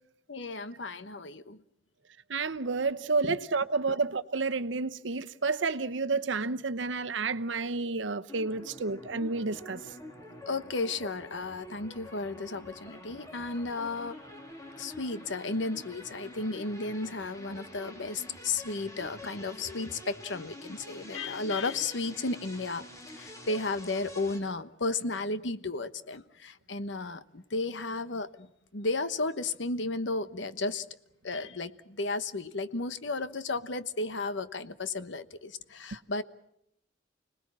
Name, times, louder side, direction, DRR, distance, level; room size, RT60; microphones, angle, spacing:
voice 1, 0.3-1.6 3.2-3.4 3.9-4.0 10.5-14.2 14.8-28.5 28.7-30.8 31.2-36.2, left 3 dB, 70° left, 1.1 m, -34 dB
voice 2, 2.3-9.8, right 4 dB, 75° right, 0.9 m, -30 dB
sound 1, 8.3-24.4, left 1 dB, 20° left, 3.6 m, -47 dB
30.0 x 19.5 x 7.5 m
head